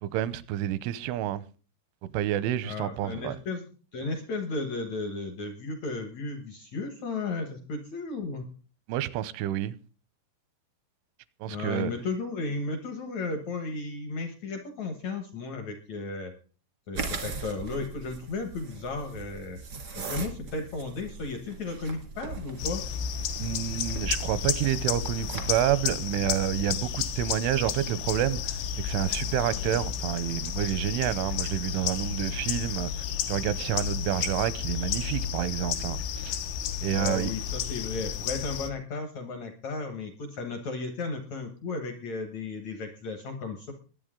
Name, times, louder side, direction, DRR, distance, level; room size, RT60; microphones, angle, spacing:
voice 1, 0.0-1.4 2.1-3.4 8.9-9.8 11.4-11.9 23.4-32.9 33.3-36.4 36.8-37.3, right 12 dB, 85° right, 3.2 m, -29 dB
voice 2, 2.6-3.6 3.9-8.4 11.5-16.3 16.9-19.6 19.9-22.8 36.9-43.7, left 3 dB, 70° left, 1.6 m, -34 dB
sound 1, 16.9-25.8, right 4 dB, 65° right, 0.9 m, -40 dB
sound 2, 22.6-38.7, left 8 dB, 90° left, 3.8 m, -32 dB
21.5 x 8.9 x 3.8 m
omnidirectional pair, 5.5 m